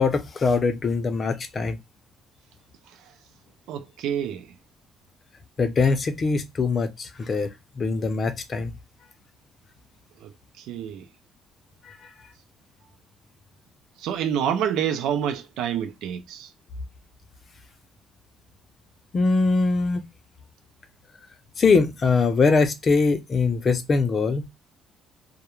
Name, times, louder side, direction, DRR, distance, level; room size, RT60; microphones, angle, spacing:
voice 1, 0.0-1.8 5.6-7.5 7.8-8.7 11.8-12.0 19.1-20.0 21.6-24.4, left 4 dB, 35° left, 0.5 m, -22 dB
voice 2, 3.7-4.5 10.2-11.1 14.0-16.5, right 9 dB, 85° right, 0.4 m, -28 dB
2.3 x 2.1 x 2.9 m
cardioid pair, 115°, 0 cm